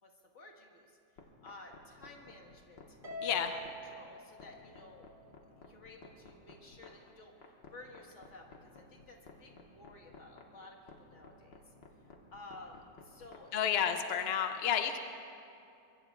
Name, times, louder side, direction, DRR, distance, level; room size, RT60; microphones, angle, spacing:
voice 1, 0.0-3.0 3.4-3.6 3.9-5.1 5.6-11.6 12.0-13.8, left 2 dB, 45° left, 0 dB, 1.9 m, -54 dB
sound 1, 1.2-14.0, left 5 dB, 80° left, 2.1 m, -54 dB
Harp, 3.0-5.5, equal, 20° right, 2.2 m, -46 dB
voice 2, 3.2-3.5 13.5-15.0, left 8 dB, 60° left, 7 dB, 0.6 m, -31 dB
24.0 x 23.0 x 2.4 m, 2.6 s
omnidirectional pair, 1.8 m